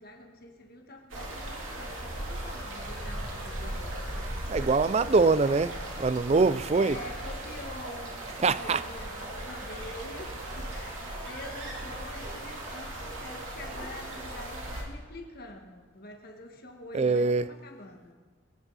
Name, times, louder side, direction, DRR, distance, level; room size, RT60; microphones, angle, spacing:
voice 1, 0.0-4.2 6.7-18.1, left 2 dB, 45° left, 1.6 m, -46 dB
sound 1, 1.1-14.8, right 1 dB, 70° right, 2.8 m, -38 dB
voice 2, 4.5-7.0 8.4-8.8 16.9-17.4, right 4 dB, 30° right, 0.3 m, -24 dB
22.0 x 10.0 x 4.1 m
head